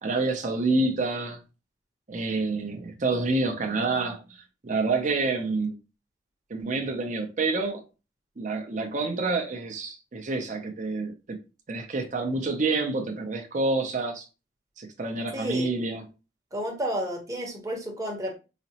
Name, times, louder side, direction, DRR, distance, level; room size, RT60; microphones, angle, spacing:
voice 1, 0.0-1.4 2.1-5.8 6.5-7.8 8.4-11.4 11.7-14.3 14.8-16.1, right 3 dB, 45° right, 0.6 m, -28 dB
voice 2, 15.3-15.7 16.5-18.4, equal, 20° right, 0.9 m, -31 dB
4.9 x 2.0 x 2.9 m
head